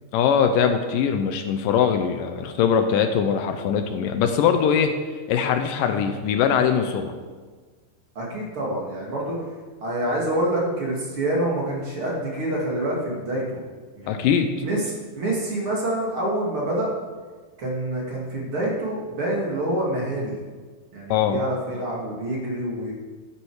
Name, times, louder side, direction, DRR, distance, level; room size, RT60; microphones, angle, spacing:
voice 1, 0.1-4.9 5.3-7.1 14.1-14.5 21.1-21.4, left 7 dB, 75° left, 7 dB, 2.3 m, -21 dB
voice 2, 8.2-9.5 9.8-13.6 13.9-16.9 17.6-20.4 20.9-22.9, right 1 dB, 40° right, -3 dB, 2.7 m, -27 dB
13.0 x 9.3 x 4.8 m, 1.4 s
omnidirectional pair, 4.1 m